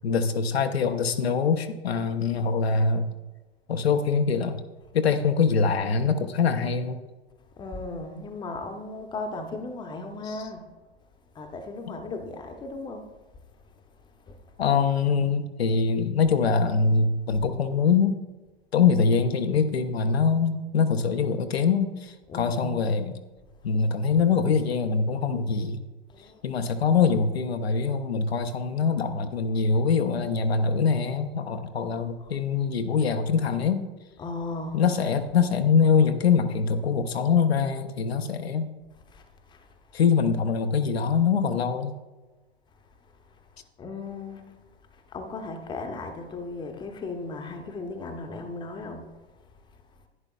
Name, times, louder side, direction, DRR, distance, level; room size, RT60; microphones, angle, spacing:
voice 1, 0.0-3.1 3.7-4.6 4.9-7.0 10.3-10.4 14.6-18.2 18.7-23.2 23.6-25.8 26.4-33.8 34.7-38.7 39.9-42.0, left 5 dB, 70° left, 0.7 m, -23 dB
voice 2, 7.6-10.7 11.3-13.1 13.7-14.5 22.3-22.8 26.1-26.4 32.2-32.3 34.2-34.8 39.1-39.8 43.0-44.6 44.9-49.8, left 3 dB, 15° left, 0.8 m, -37 dB
11.0 x 9.7 x 2.3 m
figure-of-eight pair, 95°, 32 cm